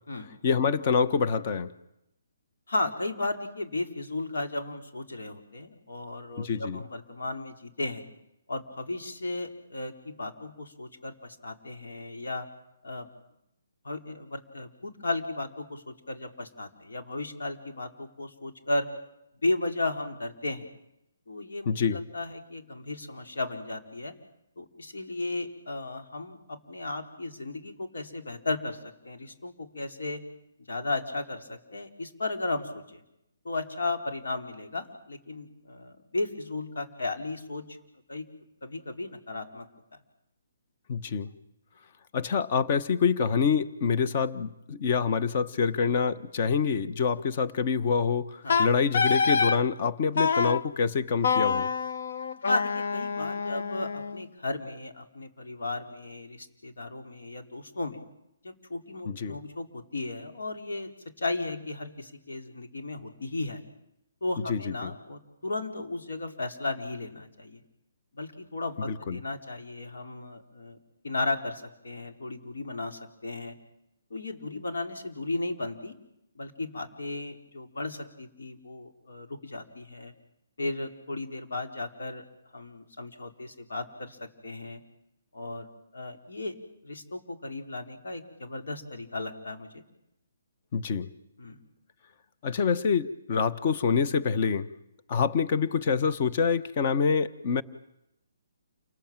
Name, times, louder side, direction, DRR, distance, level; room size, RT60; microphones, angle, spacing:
voice 1, 0.4-1.7 6.4-6.8 21.6-22.0 40.9-41.3 42.1-51.7 59.0-59.4 64.4-64.9 68.8-69.2 90.7-91.1 92.4-94.7 95.1-97.6, left 6 dB, 35° left, 11 dB, 1.2 m, -26 dB
voice 2, 2.7-8.0 8.5-12.5 12.8-13.1 13.8-18.9 19.4-20.7 21.3-24.1 24.6-30.2 30.7-33.0 33.4-37.6 38.1-38.2 38.6-39.7 48.4-48.6 52.5-58.0 58.4-60.9 61.2-63.6 64.2-67.6 68.1-70.8 71.0-73.6 74.1-76.0 76.3-80.1 80.6-82.2 82.5-84.8 85.3-85.7 85.9-86.5 86.8-89.8 91.4-91.6, left 2 dB, 85° left, 4 dB, 4.6 m, -35 dB
Wind instrument woodwind instrument, 48.5-49.6 50.2-50.6 51.2-54.2, left 5 dB, 65° left, 1.0 m, -26 dB
28.5 x 20.0 x 9.0 m, 0.83 s
hypercardioid pair, 165°, 0 cm